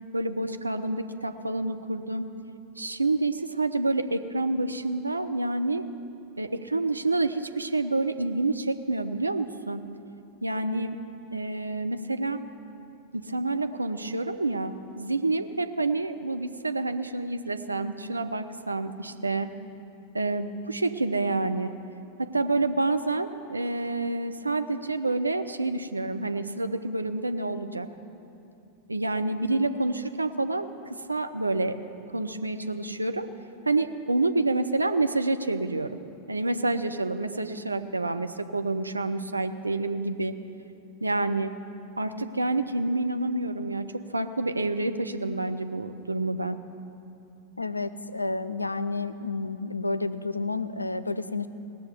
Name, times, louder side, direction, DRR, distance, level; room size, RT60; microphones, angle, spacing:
voice 1, 0.1-2.3 2.8-5.9 6.4-9.8 10.4-11.0 11.3-12.4 13.1-19.5 20.1-21.7 22.2-27.9 28.9-31.8 32.1-33.3 33.7-36.0 36.3-40.4 41.0-41.6 42.0-46.6, right 2 dB, 80° right, 8 dB, 0.6 m, -28 dB
voice 2, 47.6-51.5, left 3 dB, 85° left, 13 dB, 0.5 m, -30 dB
18.5 x 6.8 x 8.1 m, 2.8 s
figure-of-eight pair, 90°, 0 cm